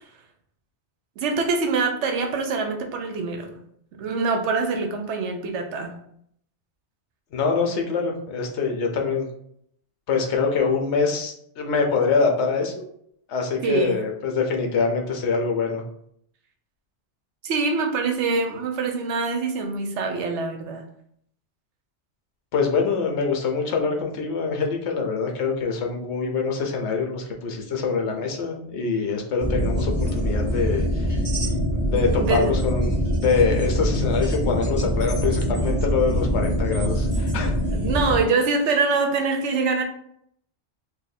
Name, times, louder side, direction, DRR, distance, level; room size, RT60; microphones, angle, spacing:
voice 1, 1.2-3.6 4.0-6.0 13.6-14.0 17.4-20.8 32.2-32.5 37.7-39.8, right 4 dB, 80° right, 4 dB, 0.9 m, -24 dB
voice 2, 7.3-9.3 10.1-12.8 13.3-15.8 22.5-31.1 31.8-33.0 33.2-37.5, left 4 dB, 75° left, 2 dB, 1.0 m, -24 dB
sound 1, 29.4-38.2, equal, 10° right, 1.4 m, -24 dB
2.7 x 2.5 x 4.0 m, 0.68 s
omnidirectional pair, 1.2 m